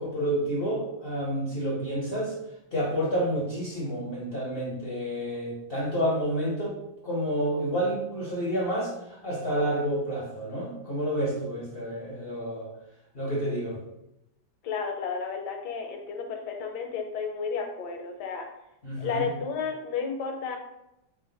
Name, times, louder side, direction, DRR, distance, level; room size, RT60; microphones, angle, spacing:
voice 1, 0.0-2.3 2.7-6.7 7.0-12.7 13.1-13.8 18.8-19.3, equal, 55° left, -5 dB, 0.6 m, -29 dB
voice 2, 14.6-18.5 19.0-20.6, left 5 dB, 70° left, 3 dB, 1.1 m, -32 dB
4.9 x 2.1 x 3.8 m, 0.87 s
omnidirectional pair, 2.1 m